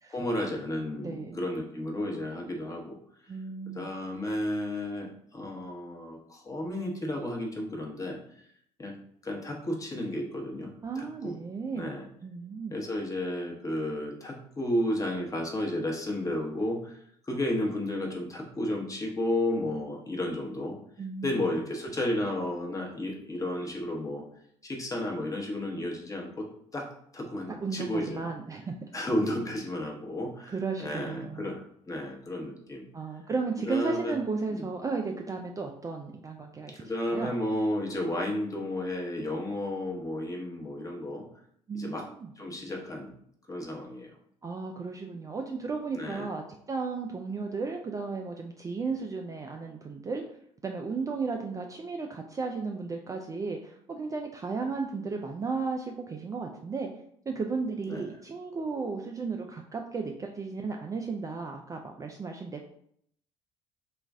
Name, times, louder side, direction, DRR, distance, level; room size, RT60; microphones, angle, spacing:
voice 1, 0.1-3.0 3.7-8.2 8.8-8.9 9.2-11.3 11.7-12.1 12.7-20.8 21.2-24.3 24.6-28.2 28.9-32.8 33.6-34.2 34.5-34.7 36.7-41.3 41.7-42.1 42.4-43.1 43.5-44.1 45.9-46.3 57.9-58.0, left 1 dB, 20° left, 0 dB, 1.0 m, -32 dB
voice 2, 1.0-1.4 3.3-3.9 10.8-12.0 12.2-12.8 21.0-21.6 27.6-28.7 30.5-31.5 32.9-36.8 37.1-37.4 41.7-42.3 44.4-50.2 50.6-56.9 57.3-62.7, right 4 dB, 20° right, 2 dB, 0.4 m, -34 dB
3.0 x 2.4 x 3.4 m, 0.67 s
hypercardioid pair, 60°, 16 cm